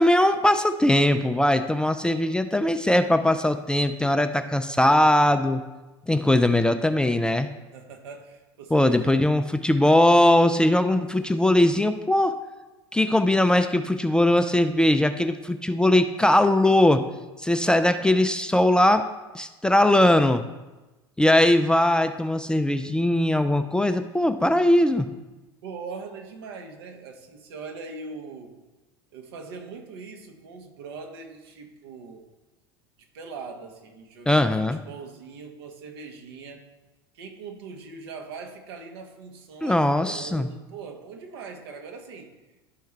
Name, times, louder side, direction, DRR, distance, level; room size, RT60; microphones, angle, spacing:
voice 1, 0.0-5.6 6.1-7.5 8.7-12.4 12.9-17.1 17.4-19.1 19.3-20.4 21.2-25.1 34.3-34.8 39.6-40.5, left 1 dB, 5° left, 8 dB, 0.4 m, -20 dB
voice 2, 7.7-9.3 25.6-28.6 29.1-32.2 33.1-36.6 37.1-42.3, right 4 dB, 65° right, 4 dB, 1.1 m, -41 dB
11.5 x 4.5 x 3.2 m, 1.1 s
figure-of-eight pair, 75°, 14 cm